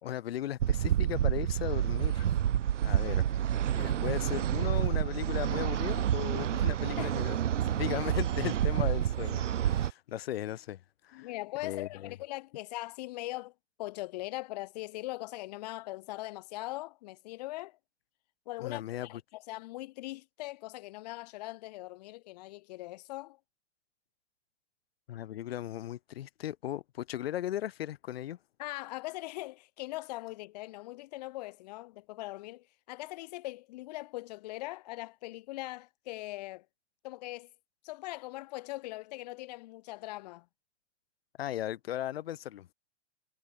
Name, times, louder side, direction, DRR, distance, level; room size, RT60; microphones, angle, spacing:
voice 1, 0.0-2.3 2.8-3.4 3.7-11.3 11.6-12.1 18.6-19.1 25.1-28.4 41.4-42.7, left 12 dB, 55° left, 2.0 m, -37 dB
sound 1, 0.6-9.9, right 10 dB, 90° right, 1.5 m, -29 dB
voice 2, 11.1-17.8 18.5-23.4 28.6-36.7 37.0-37.5 37.8-40.5, left 19 dB, 35° left, 2.0 m, -41 dB
hypercardioid pair, 170°, 36 cm